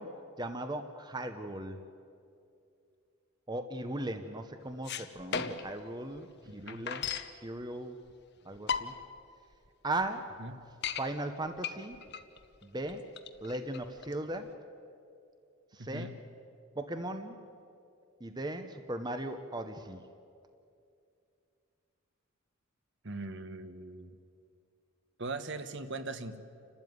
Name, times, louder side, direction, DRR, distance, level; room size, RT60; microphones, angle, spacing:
voice 1, 0.0-1.8 3.5-7.1 7.4-8.0 8.5-8.9 9.8-10.4 11.0-12.0 12.6-13.1 13.4-14.5 15.7-16.1 16.8-17.4 18.2-20.0, right 1 dB, 20° right, 7 dB, 0.8 m, -38 dB
sound 1, 4.7-5.8 6.2-6.3 6.4-7.3 8.1-8.2 8.5-9.2 9.7-9.8 10.0-10.1 10.5-11.0 11.6-14.5, left 6 dB, 50° left, 1.0 m, -36 dB
voice 2, 6.4-6.8 10.4-10.5 15.8-16.1 23.0-24.2 25.2-26.4, right 2 dB, 55° right, 10 dB, 1.2 m, -40 dB
30.0 x 13.0 x 9.4 m, 2.5 s
head